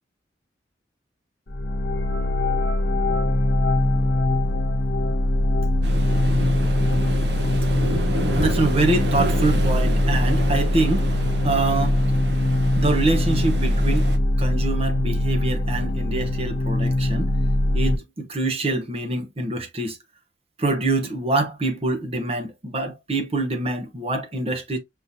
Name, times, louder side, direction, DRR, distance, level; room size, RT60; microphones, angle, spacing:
sound 1, 1.5-17.9, left 1 dB, 60° left, 1.0 m, -22 dB
Waves surf, 5.8-14.2, equal, 65° right, 1.1 m, -30 dB
voice 1, 8.4-11.1 11.4-12.0 12.8-14.1 14.4-17.3 17.7-20.0 20.6-24.8, right 2 dB, 35° right, 1.0 m, -25 dB
5.6 x 3.0 x 2.7 m
head